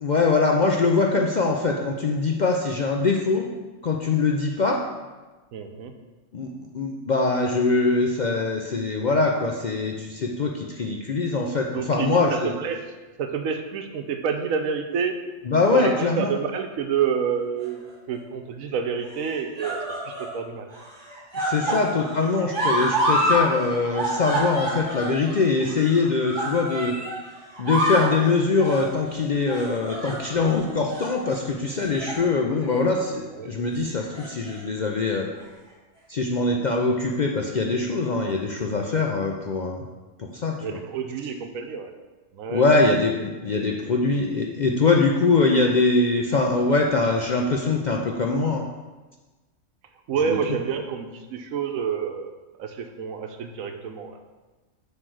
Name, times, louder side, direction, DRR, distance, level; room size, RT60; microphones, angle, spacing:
voice 1, 0.0-3.5 3.8-4.8 6.3-12.5 15.5-16.3 21.3-27.0 27.6-35.3 36.1-39.8 40.2-40.8 42.5-48.6 50.3-50.4, left 3 dB, 55° left, 1 dB, 0.5 m, -23 dB
voice 2, 5.5-5.9 11.7-12.9 13.2-15.2 15.7-20.7 21.7-22.0 33.3-33.5 40.6-41.9 42.3-42.6 43.5-43.7 50.1-52.3 52.6-54.2, right 7 dB, 85° right, 6 dB, 1.1 m, -28 dB
sound 1, 17.6-18.2 19.1-20.4 20.7-23.5 23.7-27.2 27.5-28.1 28.6-28.9 29.5-30.5 30.9-31.1 31.7-32.3 32.6-32.8 33.9-34.6 35.4-35.5, right 1 dB, 35° right, 1.7 m, -27 dB
7.6 x 3.3 x 6.2 m, 1.2 s
omnidirectional pair, 1.4 m